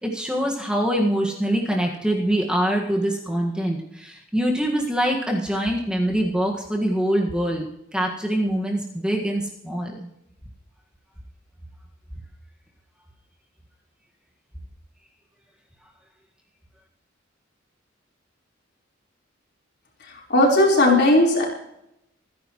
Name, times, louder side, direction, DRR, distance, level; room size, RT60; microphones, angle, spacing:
voice 1, 0.0-7.7 7.9-9.9, right 1 dB, 5° right, -1 dB, 1.7 m, -24 dB
voice 2, 20.3-21.4, left 1 dB, 55° left, -2 dB, 4.3 m, -16 dB
26.0 x 10.5 x 3.1 m, 0.81 s
head